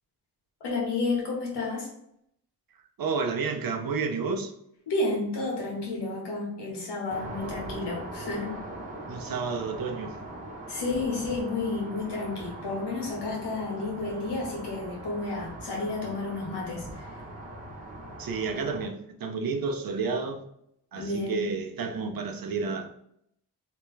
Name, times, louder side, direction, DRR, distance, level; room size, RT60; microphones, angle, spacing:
voice 1, 0.6-1.9 4.9-8.5 10.7-17.1 21.0-21.5, left 3 dB, 85° left, 1.4 m, -31 dB
voice 2, 3.0-4.5 9.0-10.1 18.2-20.4 20.9-23.0, right 4 dB, 60° right, 0.7 m, -31 dB
sound 1, 7.1-18.9, right 1 dB, 20° right, 1.1 m, -41 dB
3.4 x 2.9 x 3.2 m
cardioid pair, 60°, 40 cm